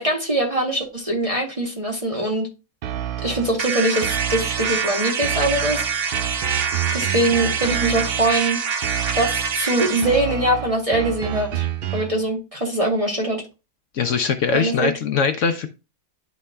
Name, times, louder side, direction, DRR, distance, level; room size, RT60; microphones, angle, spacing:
voice 1, 0.0-2.5 3.2-5.9 6.1-6.2 6.9-8.6 9.1-13.4 14.5-14.9, right 1 dB, 25° right, 1.0 m, -22 dB
sound 1, 2.8-3.6 4.0-4.8 5.2-8.4 8.8-9.6 10.0-12.2, right 11 dB, 85° right, 0.4 m, -29 dB
sound 2, 3.6-10.1, right 6 dB, 55° right, 0.7 m, -25 dB
voice 2, 13.9-15.7, left 5 dB, 65° left, 0.9 m, -21 dB
11.5 x 4.0 x 2.2 m
omnidirectional pair, 1.5 m